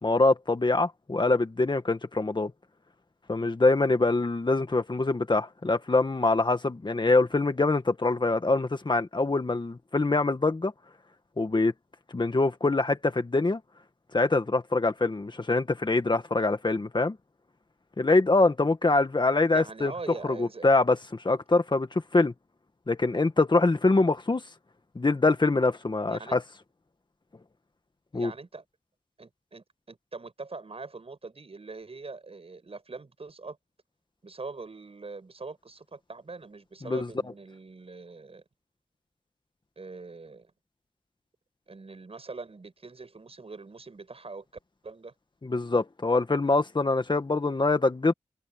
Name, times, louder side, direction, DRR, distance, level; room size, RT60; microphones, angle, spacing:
voice 1, 0.0-2.5 3.3-10.7 11.4-11.7 12.1-13.6 14.1-17.2 18.0-19.9 20.4-22.3 22.9-24.4 25.0-26.4 28.1-28.3 36.8-37.1 45.4-48.1, left 3 dB, 35° left, 1.8 m, -24 dB
voice 2, 19.5-20.7 26.1-26.4 28.1-28.6 29.2-33.6 34.2-38.4 39.8-40.5 41.7-44.5 44.8-45.1, right 3 dB, 50° right, 7.2 m, -42 dB
wide cardioid pair, 70°, 13 cm